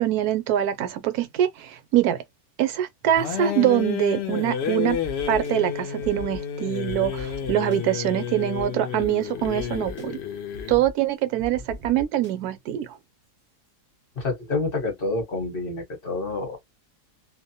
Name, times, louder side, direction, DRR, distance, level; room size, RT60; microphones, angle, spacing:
voice 1, 0.0-2.2 2.6-5.0 5.3-10.2 10.7-12.9, right 12 dB, 75° right, 1.1 m, -24 dB
sound 1, 3.2-10.8, left 8 dB, 65° left, 0.6 m, -30 dB
sound 2, 4.9-5.5 6.0-6.4 6.9-7.8 8.5-8.6 9.0-9.1 9.4-10.0 10.5-10.9 11.4-12.3, left 3 dB, 40° right, 0.6 m, -39 dB
voice 2, 14.2-16.6, left 3 dB, 40° left, 1.0 m, -28 dB
2.7 x 2.0 x 2.7 m
omnidirectional pair, 1.7 m